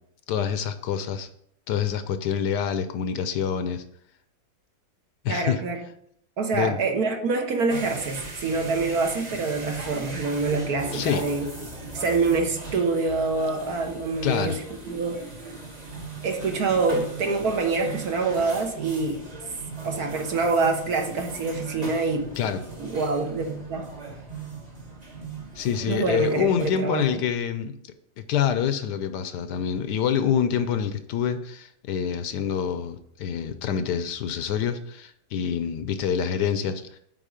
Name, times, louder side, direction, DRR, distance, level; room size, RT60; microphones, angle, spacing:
voice 1, 0.3-1.3 1.7-3.8 5.2-5.6 6.5-6.8 10.9-11.3 14.2-14.6 22.4-22.6 25.6-37.0, left 8 dB, 75° left, 10 dB, 1.2 m, -26 dB
voice 2, 5.3-5.8 6.4-11.5 11.9-14.6 14.9-15.2 16.2-19.2 19.8-22.3 22.8-23.9 25.8-27.2, right 3 dB, 60° right, 3 dB, 1.5 m, -26 dB
sound 1, 7.7-26.7, right 3 dB, 25° right, 1.1 m, -38 dB
9.0 x 4.2 x 5.0 m, 0.69 s
omnidirectional pair, 1.9 m